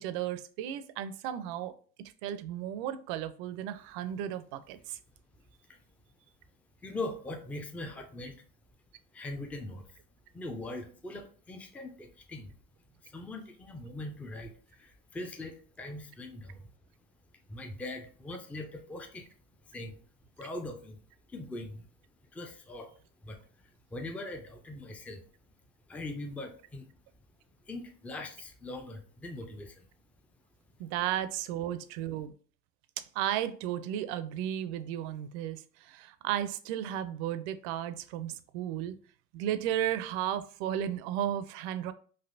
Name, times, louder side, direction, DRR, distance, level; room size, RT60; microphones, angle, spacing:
voice 1, 0.0-1.7 2.2-5.0 30.8-32.3 33.0-39.0 39.3-41.9, right 11 dB, 85° right, 12 dB, 0.5 m, -34 dB
voice 2, 6.8-8.4 9.1-9.9 10.3-12.5 13.0-16.7 17.5-19.3 19.7-20.0 20.4-21.0 21.3-21.9 22.3-22.9 23.2-23.4 23.9-25.2 25.9-26.9 27.7-29.9, left 2 dB, 5° left, 5 dB, 0.3 m, -41 dB
3.3 x 2.6 x 2.5 m, 0.42 s
cardioid pair, 115°, 31 cm